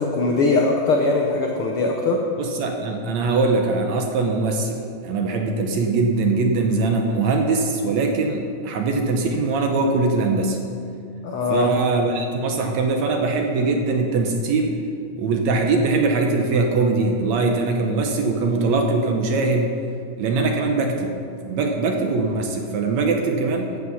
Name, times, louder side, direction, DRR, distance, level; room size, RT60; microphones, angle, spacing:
voice 1, 0.0-2.2 11.2-11.7, left 3 dB, 85° left, 1 dB, 1.2 m, -21 dB
voice 2, 2.4-10.6 11.5-14.8 15.2-19.7 20.2-21.2 21.4-23.7, right 3 dB, 70° right, 3 dB, 1.9 m, -22 dB
13.5 x 8.4 x 5.7 m, 2.4 s
omnidirectional pair, 3.8 m